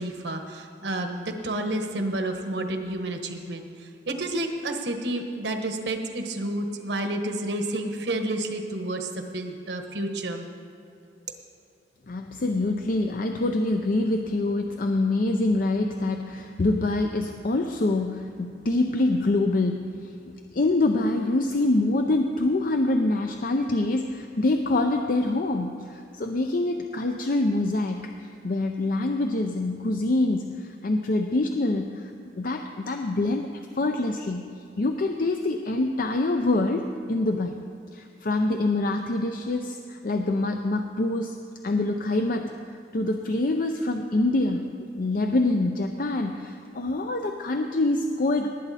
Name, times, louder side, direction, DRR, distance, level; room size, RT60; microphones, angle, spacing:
voice 1, 0.0-3.7 4.0-10.4, right 1 dB, 65° right, 5 dB, 1.2 m, -30 dB
voice 2, 12.1-28.1 28.4-33.5 33.8-34.5 34.8-37.6 37.9-41.4 41.6-42.5 42.9-44.7 45.0-48.5, left 2 dB, 50° left, 5 dB, 0.5 m, -25 dB
19.0 x 9.0 x 4.2 m, 2.7 s
head